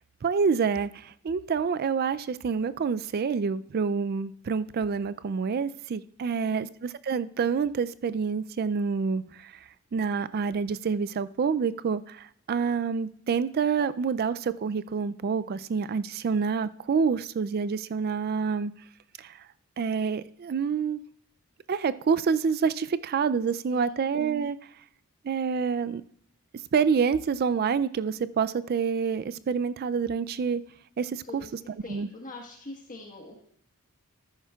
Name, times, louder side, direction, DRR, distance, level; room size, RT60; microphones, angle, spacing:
voice 1, 0.2-9.6 9.9-18.7 19.2-19.4 19.8-21.0 21.7-24.6 25.2-26.0 26.7-30.6 31.0-31.6 31.9-32.1, right 6 dB, 45° right, 0.3 m, -27 dB
voice 2, 6.2-6.7 23.7-24.0 31.3-31.5 31.8-33.3, left 2 dB, 35° left, 1.4 m, -43 dB
13.0 x 10.0 x 2.3 m
head